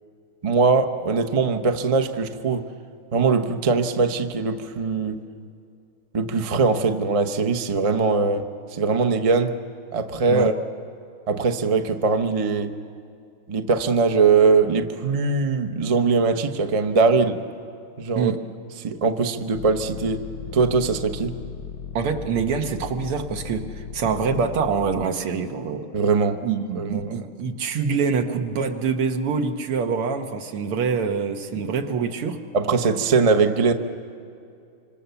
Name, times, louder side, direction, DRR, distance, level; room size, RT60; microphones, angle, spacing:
voice 1, 0.4-2.6 3.1-5.2 6.1-8.4 8.7-9.5 9.9-10.5 11.3-12.8 13.5-17.4 18.0-18.3 18.8-20.2 20.5-21.3 25.9-26.4 26.7-27.2 32.5-33.7, right 4 dB, 60° right, 7 dB, 0.3 m, -21 dB
sound 1, 19.5-25.1, left 7 dB, 65° left, 1.0 m, -37 dB
voice 2, 21.9-25.9 26.4-32.4, right 5 dB, 85° right, 5 dB, 2.3 m, -25 dB
26.0 x 26.0 x 7.0 m, 2.5 s
omnidirectional pair, 2.4 m